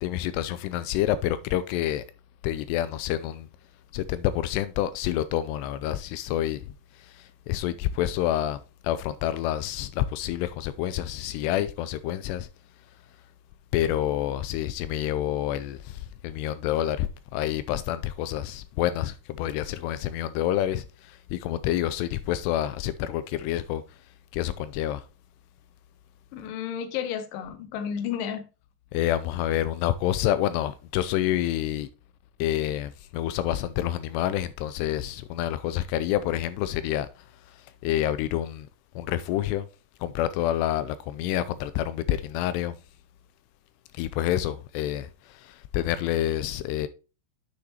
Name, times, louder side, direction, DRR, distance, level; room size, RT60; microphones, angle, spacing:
voice 1, 0.0-2.0 2.4-3.5 3.9-6.6 7.0-12.5 13.7-23.8 24.3-25.0 28.9-31.9 32.4-37.1 37.5-38.7 39.0-39.7 40.0-42.8 43.9-46.9, left 12 dB, 85° left, 2.6 m, -28 dB
voice 2, 26.3-28.4, left 8 dB, 70° left, 2.4 m, -32 dB
9.9 x 6.2 x 2.8 m
omnidirectional pair, 4.8 m